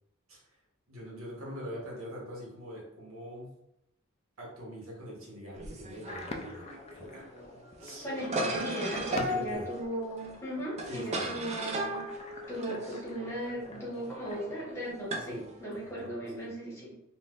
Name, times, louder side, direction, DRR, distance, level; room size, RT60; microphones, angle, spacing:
voice 1, 0.9-3.5 4.4-7.3 7.8-8.2 9.1-9.7 10.8-11.3 15.3-15.5 15.7-16.1 16.4-16.5, equal, 80° right, -4 dB, 1.2 m, -43 dB
sound 1, 5.5-15.9, right 1 dB, 30° right, 0.4 m, -37 dB
sound 2, 6.0-14.9, left 3 dB, 30° left, 0.4 m, -46 dB
voice 2, 8.0-12.1 12.5-16.9, right 1 dB, 15° left, -6 dB, 1.2 m, -37 dB
3.7 x 2.5 x 2.5 m, 0.83 s
head